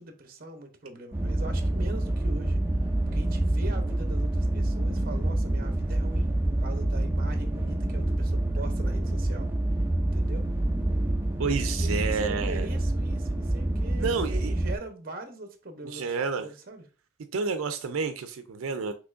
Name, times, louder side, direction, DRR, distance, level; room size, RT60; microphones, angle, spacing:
voice 1, 0.0-2.6 3.1-9.5 10.1-10.5 11.8-16.8, right 2 dB, 45° right, 0.8 m, -42 dB
sound 1, 1.1-14.8, right 1 dB, 10° right, 0.4 m, -27 dB
voice 2, 11.4-12.7 14.0-14.5 15.8-16.5 17.3-18.9, right 5 dB, 85° right, 0.4 m, -30 dB
6.0 x 3.1 x 2.5 m
head